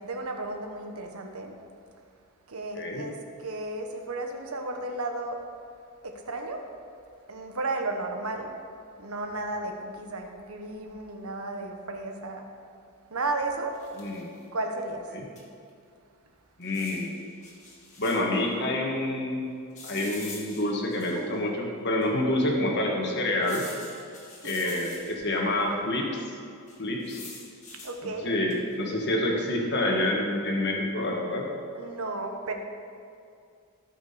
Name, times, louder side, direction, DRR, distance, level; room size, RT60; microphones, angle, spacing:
voice 1, 0.0-1.6 2.5-5.4 6.0-6.7 7.3-8.5 9.0-12.5 13.1-13.8 14.5-15.2 24.4-24.8 27.8-28.3 31.7-32.5, right 2 dB, 80° right, 3 dB, 1.3 m, -34 dB
voice 2, 2.7-3.1 14.0-14.3 15.1-15.2 16.6-17.2 18.0-19.4 19.9-23.6 24.4-26.2 26.8-27.2 28.2-31.5, left 1 dB, 50° left, -1 dB, 1.6 m, -27 dB
sound 1, 13.7-14.3 15.4-15.5 15.7-15.8 16.6-18.4 19.7-21.4 22.0-22.1 23.4-25.4 26.7-28.0 28.5-28.8, left 3 dB, 35° left, 2.1 m, -45 dB
18.0 x 6.0 x 4.3 m, 2.4 s
head